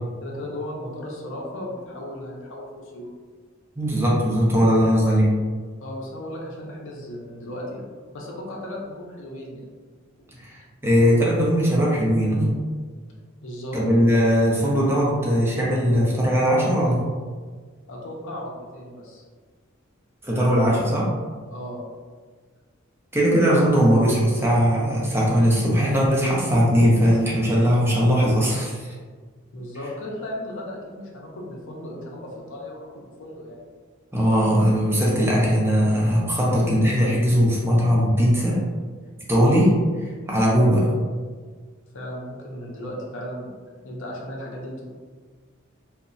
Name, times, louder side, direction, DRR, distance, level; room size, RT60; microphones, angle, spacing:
voice 1, 0.2-3.1 4.9-5.0 5.8-7.9 8.1-9.6 13.4-13.8 17.9-19.2 21.5-21.8 29.5-33.6 41.9-43.5 43.8-44.9, left 1 dB, 65° left, -2 dB, 0.6 m, -35 dB
voice 2, 3.8-5.3 10.4-12.6 13.7-17.1 20.2-21.1 23.1-28.9 34.1-38.6 39.3-39.7 40.3-40.9, equal, 10° right, -5 dB, 0.5 m, -19 dB
2.8 x 2.1 x 2.5 m, 1.5 s
head